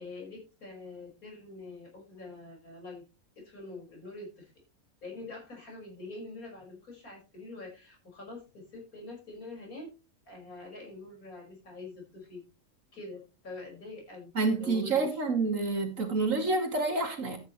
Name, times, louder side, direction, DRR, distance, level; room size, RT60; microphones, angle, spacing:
voice 1, 0.0-3.0 3.4-4.5 5.0-9.9 10.3-12.4 12.9-14.3 14.6-15.2, left 3 dB, 85° left, 6.3 m, -45 dB
voice 2, 14.3-17.4, right 3 dB, 65° right, 3.0 m, -28 dB
13.5 x 10.0 x 3.3 m
omnidirectional pair, 1.5 m